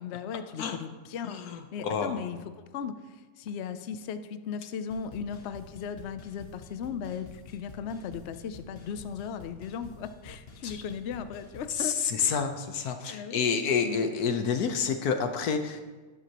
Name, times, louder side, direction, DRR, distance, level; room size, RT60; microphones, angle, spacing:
voice 1, 0.0-1.4 1.7-2.4 2.7-12.4 13.1-13.4 13.8-14.1, left 7 dB, 60° left, 11 dB, 0.8 m, -37 dB
voice 2, 1.3-2.2 10.6-10.8 11.8-15.8, left 6 dB, 85° left, 7 dB, 1.4 m, -29 dB
sound 1, 4.9-11.8, left 2 dB, 45° left, 1.2 m, -49 dB
12.0 x 11.0 x 3.0 m, 1.3 s
omnidirectional pair, 1.6 m